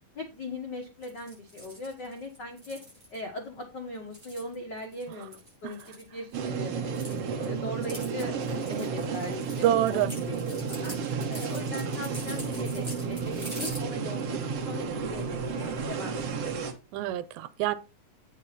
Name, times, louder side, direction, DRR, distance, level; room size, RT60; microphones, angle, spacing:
voice 1, 0.1-2.8 3.1-6.9 7.3-10.9 11.3-16.5, left 2 dB, 90° left, 0.9 m, -40 dB
sound 1, 1.0-3.2 3.9-6.4 6.7-13.8, equal, 15° right, 6.3 m, -44 dB
sound 2, 6.3-16.7, right 5 dB, 60° right, 1.7 m, -32 dB
voice 2, 9.6-10.1 16.9-17.8, right 13 dB, 85° right, 2.5 m, -26 dB
9.1 x 5.9 x 4.2 m
omnidirectional pair, 4.2 m